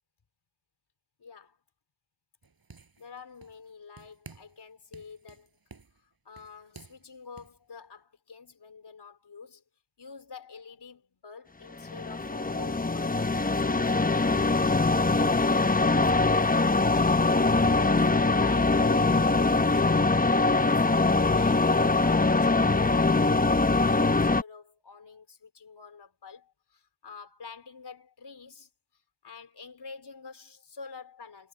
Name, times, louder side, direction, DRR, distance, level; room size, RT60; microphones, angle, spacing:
voice 1, 1.2-1.6 3.0-5.6 6.0-9.6 10.0-17.3 17.6-28.7 29.2-31.5, left 5 dB, 80° left, 4.1 m, -47 dB
sound 1, 2.4-3.7 4.0-4.6 4.9-7.6, right 4 dB, 60° right, 7.8 m, -52 dB
sound 2, 11.8-24.4, left 3 dB, 20° left, 0.9 m, -23 dB
cardioid pair, 55°, 39 cm